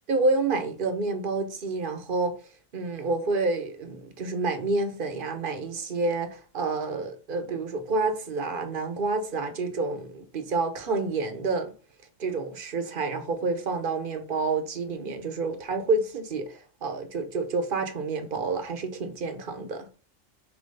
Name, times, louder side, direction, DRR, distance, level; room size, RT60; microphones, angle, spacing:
voice 1, 0.1-2.3 2.7-11.7 12.2-19.9, right 3 dB, 45° right, 1.1 m, -28 dB
7.0 x 3.0 x 5.4 m
omnidirectional pair, 1.4 m